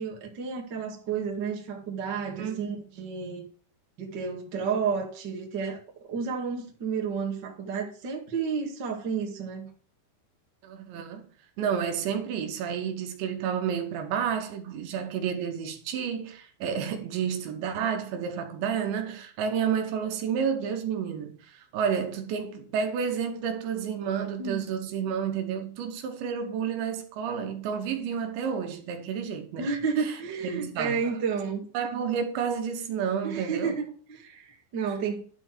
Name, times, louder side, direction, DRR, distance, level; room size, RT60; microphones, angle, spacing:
voice 1, 0.0-3.5 4.0-5.8 6.1-9.7 24.4-24.6 29.6-31.6 33.2-35.2, right 5 dB, 40° right, 1.7 m, -31 dB
voice 2, 10.6-11.3 11.6-29.7 30.0-30.2 30.4-31.0 31.7-33.8, right 7 dB, 75° right, 3.4 m, -30 dB
11.5 x 4.4 x 6.1 m
omnidirectional pair, 5.4 m